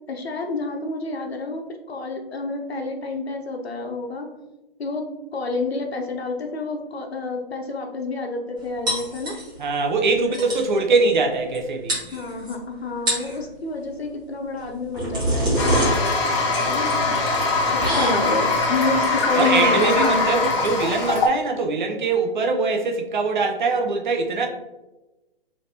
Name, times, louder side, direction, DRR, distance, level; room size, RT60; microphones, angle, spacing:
voice 1, 0.1-1.6 1.9-4.3 4.8-5.0 5.3-9.4 12.1-15.5 16.6-16.9 17.7-20.2, left 3 dB, 85° left, 3 dB, 0.8 m, -28 dB
sound 1, 8.9-9.7 10.0-10.1 10.3-10.7 11.5-11.6 11.9-12.5 12.9-13.4 14.6-21.2, right 1 dB, 15° right, 1.0 m, -27 dB
voice 2, 9.6-12.0 16.2-16.5 19.3-24.5, right 3 dB, 50° right, 3 dB, 0.5 m, -22 dB
Toilet flush, 15.6-21.3, left 3 dB, 30° left, 0.6 m, -22 dB
3.2 x 2.8 x 2.7 m, 1.0 s
hypercardioid pair, 135°, 30 cm